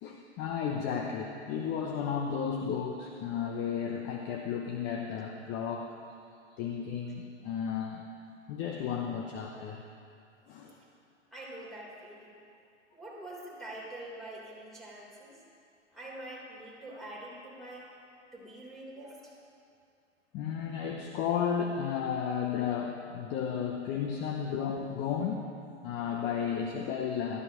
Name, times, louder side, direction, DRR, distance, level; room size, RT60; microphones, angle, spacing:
voice 1, 0.0-6.0 6.6-8.0 8.5-9.8 10.5-10.8 20.3-25.5 25.8-27.4, left 7 dB, 30° left, 2 dB, 0.9 m, -33 dB
voice 2, 11.3-12.4 12.9-15.3 15.9-17.8 18.3-19.3, right 1 dB, ahead, -6 dB, 3.8 m, -45 dB
17.5 x 13.5 x 3.1 m, 2.4 s
figure-of-eight pair, 110°, 36 cm